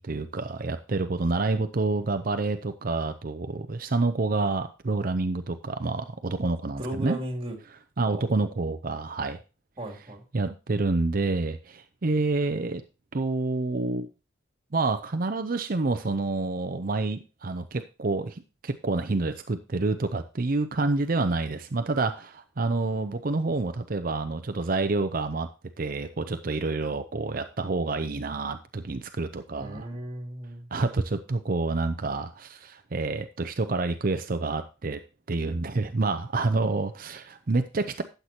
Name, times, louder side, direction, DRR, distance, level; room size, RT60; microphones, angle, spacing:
voice 1, 0.0-7.2 8.0-9.4 10.3-12.8 13.1-14.1 14.7-25.5 25.8-29.9 30.7-35.0 35.3-38.0, right 3 dB, 45° right, 9 dB, 0.6 m, -28 dB
voice 2, 6.8-7.6 8.1-8.4 9.8-10.2 29.6-30.7, equal, 30° right, 1 dB, 2.7 m, -36 dB
12.5 x 8.0 x 2.9 m, 0.30 s
head